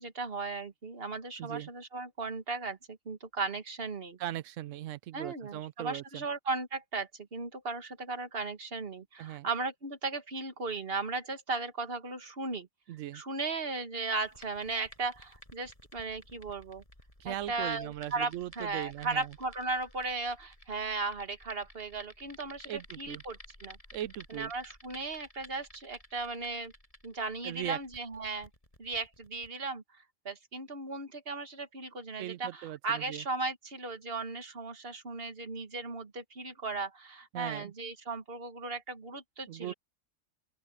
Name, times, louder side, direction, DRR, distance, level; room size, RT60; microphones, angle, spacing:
voice 1, 0.0-4.2 5.1-12.7 13.1-16.8 17.2-23.8 24.3-26.7 27.0-28.5 28.8-29.8 30.3-39.7, right 3 dB, 50° right, 2.0 m, -36 dB
voice 2, 4.2-6.2 9.2-9.5 12.9-13.2 17.2-19.3 22.7-23.2 23.9-24.5 27.4-27.8 32.2-33.2 37.3-37.7 39.5-39.7, right 13 dB, 90° right, 1.0 m, -39 dB
sound 1, 14.2-29.5, equal, 30° left, 8.0 m, -54 dB
open air
omnidirectional pair, 1.3 m